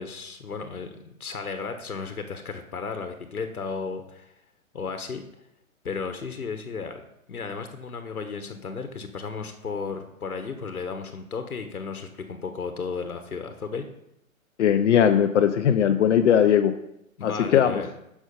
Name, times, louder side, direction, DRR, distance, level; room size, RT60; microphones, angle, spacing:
voice 1, 0.0-4.3 4.7-5.3 5.8-13.9 17.2-17.9, left 5 dB, 90° left, 7 dB, 1.3 m, -34 dB
voice 2, 14.6-16.7 17.2-17.8, left 9 dB, 55° left, 8 dB, 0.8 m, -19 dB
10.0 x 6.2 x 5.5 m, 0.81 s
hypercardioid pair, 130°, 42 cm